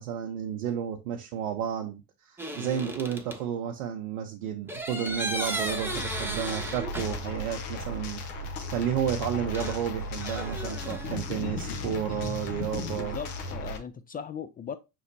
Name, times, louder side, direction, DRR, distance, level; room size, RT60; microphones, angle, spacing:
voice 1, 0.0-13.2, right 9 dB, 75° right, 0.7 m, -32 dB
sound 1, 2.4-3.4 4.7-7.5 7.8-7.9 9.5-11.1, right 1 dB, 5° right, 0.8 m, -35 dB
sound 2, 5.4-13.8, left 2 dB, 75° left, 1.0 m, -36 dB
voice 2, 13.0-14.8, left 7 dB, 20° left, 0.3 m, -38 dB
5.7 x 3.0 x 2.7 m
hypercardioid pair, 65°, 45 cm